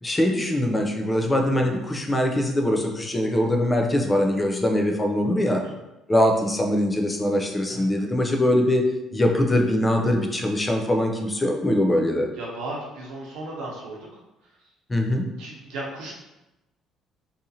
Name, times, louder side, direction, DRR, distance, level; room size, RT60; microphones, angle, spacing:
voice 1, 0.0-5.6 6.1-8.8 9.1-12.3 14.9-15.2, left 1 dB, 15° left, 2 dB, 0.4 m, -22 dB
voice 2, 12.4-14.0 15.4-16.1, right 2 dB, 85° right, -2 dB, 0.8 m, -35 dB
2.8 x 2.4 x 2.7 m, 0.97 s
cardioid pair, 120°, 0 cm